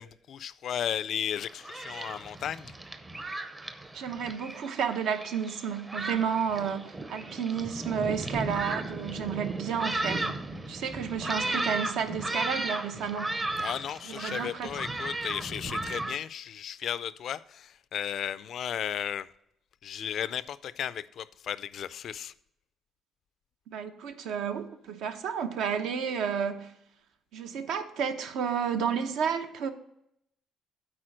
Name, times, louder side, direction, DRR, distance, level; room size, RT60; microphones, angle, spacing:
voice 1, 0.0-2.7 13.6-19.3 19.8-22.3, left 9 dB, 55° left, 0.3 m, -35 dB
Thunderstorm, 1.3-16.2, right 2 dB, 20° right, 0.6 m, -35 dB
voice 2, 3.9-13.4 14.0-14.8 23.7-26.7 27.3-29.7, right 7 dB, 75° right, 0.8 m, -31 dB
8.7 x 4.4 x 6.2 m
cardioid pair, 130°, 0 cm